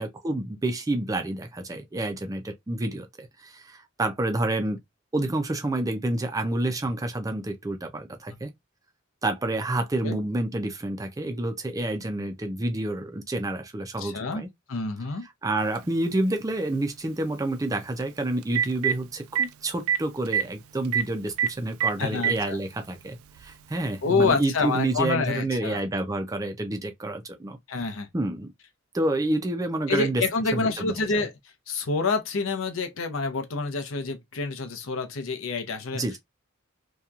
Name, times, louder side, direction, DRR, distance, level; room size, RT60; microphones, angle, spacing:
voice 1, 0.0-4.8 5.1-8.5 9.2-14.5 15.4-27.6 28.1-28.5 28.9-30.2 30.5-30.8 31.1-31.2 35.9-36.2, right 2 dB, 15° right, 0.4 m, -29 dB
voice 2, 14.0-14.4 14.7-15.3 22.0-22.6 24.0-25.8 27.7-28.1 29.9-31.3 31.7-36.0, left 4 dB, 70° left, 0.7 m, -27 dB
Telephone, 15.8-15.9 18.0-18.1 18.4-18.9 19.4-19.5 19.9-20.0 20.3-20.4 20.9-21.0 21.4-21.5 21.8-22.4 23.4-23.5 24.9-25.0, right 8 dB, 85° right, 0.3 m, -23 dB
2.8 x 2.3 x 2.3 m
head